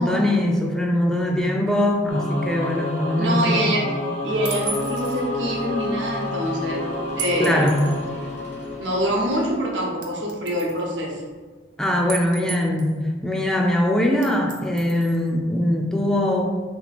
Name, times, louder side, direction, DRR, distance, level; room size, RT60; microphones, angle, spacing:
voice 1, 0.0-3.7 7.4-7.8 11.8-13.0 13.2-16.5, left 1 dB, 5° left, 0 dB, 0.3 m, -21 dB
Singing / Musical instrument, 2.1-9.6, left 1 dB, 85° left, 1.2 m, -29 dB
voice 2, 3.2-3.8 4.2-6.8 7.2-7.6 8.2-8.3 8.8-11.1, equal, 80° right, -2 dB, 0.9 m, -25 dB
sound 1, 4.3-9.6, left 3 dB, 65° left, 0.9 m, -42 dB
sound 2, 4.5-5.2 7.2-8.0 8.6-8.7 10.0-10.8 12.1-13.0 14.2-15.3, right 5 dB, 45° right, 0.5 m, -34 dB
3.1 x 2.9 x 4.2 m, 1.5 s
head